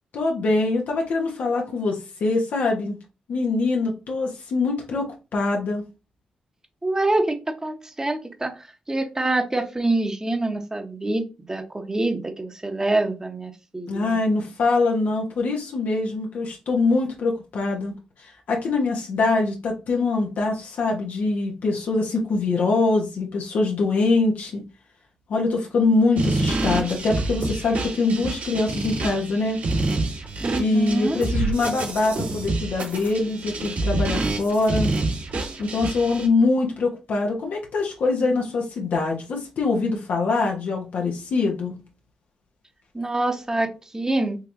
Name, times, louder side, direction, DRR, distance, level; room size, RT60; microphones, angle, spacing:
voice 1, 0.1-3.0 3.3-5.1 5.3-5.8 13.9-17.9 18.2-24.6 25.3-29.6 30.6-34.9 35.6-41.7, left 3 dB, 75° left, 1.2 m, -23 dB
voice 2, 6.8-14.2 30.4-31.2 42.9-44.4, right 2 dB, 20° right, 1.1 m, -26 dB
sound 1, 26.2-36.3, right 2 dB, 75° right, 2.7 m, -27 dB
5.5 x 3.0 x 2.6 m
supercardioid pair, 55°, 3 cm